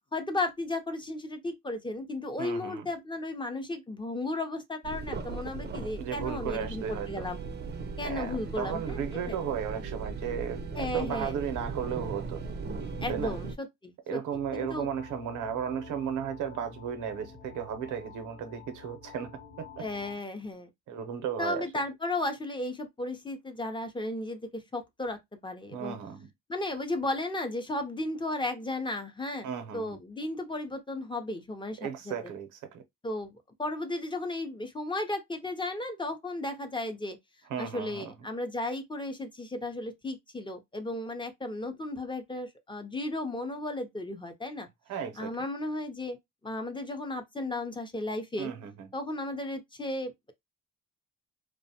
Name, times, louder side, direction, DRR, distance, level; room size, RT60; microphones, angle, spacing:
voice 1, 0.1-7.4 8.0-9.4 10.8-11.3 13.0-14.2 14.5-14.9 19.8-20.7 21.4-25.2 25.4-26.0 26.5-29.5 29.7-32.1 33.0-37.2 37.6-44.7 45.2-46.2 46.4-48.5 48.9-50.3, left 2 dB, 15° left, 0.5 m, -34 dB
voice 2, 2.4-2.9 6.0-7.3 8.0-12.4 13.1-13.4 14.1-19.3 19.6-19.8 20.9-21.7 25.7-26.3 29.4-30.0 31.8-32.8 37.5-38.1 44.9-45.3 48.4-48.9, right 8 dB, 80° right, 0.7 m, -35 dB
sound 1, 4.8-13.5, right 4 dB, 35° right, 0.5 m, -38 dB
sound 2, 14.3-20.1, left 5 dB, 50° left, 0.8 m, -49 dB
2.4 x 2.1 x 2.7 m
cardioid pair, 90°, 30 cm